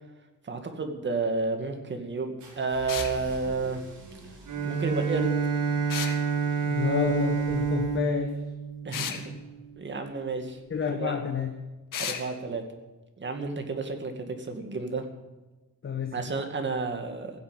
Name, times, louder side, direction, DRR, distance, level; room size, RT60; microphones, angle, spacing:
voice 1, 0.4-3.8 4.6-5.4 8.8-9.3 9.8-10.6 11.0-11.2 12.0-12.6 13.2-15.0 16.1-17.3, right 4 dB, 35° right, 5 dB, 2.3 m, -31 dB
sound 1, 2.4-8.4, right 1 dB, 65° right, 7.4 m, -47 dB
sound 2, 2.9-3.1 5.9-6.2 8.9-9.2 11.9-12.2, left 8 dB, 90° left, 1.8 m, -33 dB
Bowed string instrument, 4.5-9.5, right 6 dB, 85° right, 3.8 m, -28 dB
voice 2, 6.6-8.4 10.7-11.5 15.8-16.2, left 6 dB, 40° left, 5 dB, 1.4 m, -29 dB
15.5 x 8.5 x 9.9 m, 1.1 s
wide cardioid pair, 145°, 32 cm